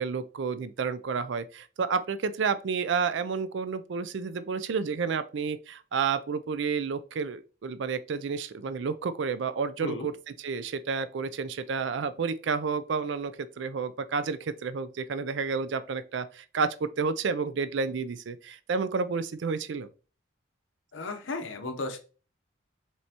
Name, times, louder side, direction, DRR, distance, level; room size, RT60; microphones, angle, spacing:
voice 1, 0.0-10.1 10.4-19.9, right 5 dB, 65° right, 0.4 m, -30 dB
voice 2, 20.9-22.0, left 3 dB, 75° left, 0.8 m, -34 dB
5.4 x 3.3 x 2.8 m
head